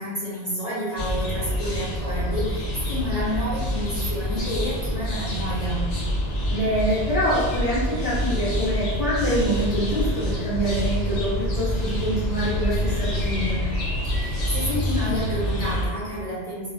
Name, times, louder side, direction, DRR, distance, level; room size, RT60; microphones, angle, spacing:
voice 1, 0.0-5.8 14.1-16.7, equal, 40° left, -10 dB, 0.7 m, -29 dB
sound 1, 1.0-15.9, equal, 70° left, 0.9 m, -26 dB
voice 2, 6.5-13.6, equal, 5° right, -10 dB, 0.6 m, -25 dB
2.3 x 2.0 x 2.6 m, 1.5 s
omnidirectional pair, 1.1 m